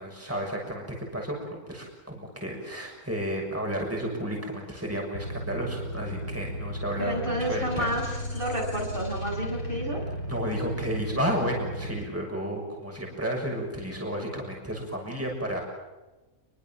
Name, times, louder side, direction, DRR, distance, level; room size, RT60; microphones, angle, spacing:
voice 1, 0.0-7.9 8.3-8.5 10.3-15.6, equal, 10° right, 0 dB, 6.6 m, -32 dB
sound 1, 5.1-12.0, equal, 85° left, 4.0 m, -35 dB
voice 2, 7.0-10.0, equal, 35° right, -1 dB, 7.3 m, -30 dB
29.0 x 23.0 x 7.4 m, 1.1 s
omnidirectional pair, 1.6 m